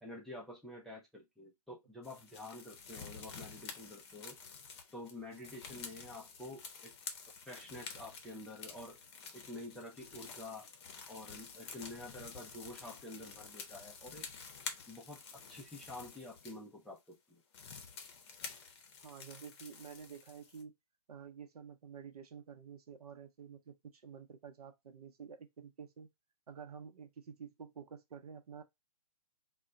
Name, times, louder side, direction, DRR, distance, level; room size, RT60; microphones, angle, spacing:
voice 1, 0.0-4.4 4.9-6.9 7.4-9.0 9.3-10.7 11.1-14.3 14.9-15.2 15.5-17.4, left 1 dB, ahead, 0.3 m, -48 dB
sound 1, 2.0-16.6 17.1-17.2 17.5-20.6, left 5 dB, 40° left, 0.6 m, -49 dB
voice 2, 19.0-20.7 21.1-26.1 26.5-28.6, right 7 dB, 75° right, 0.7 m, -50 dB
2.1 x 2.1 x 3.6 m
hypercardioid pair, 140°, 19 cm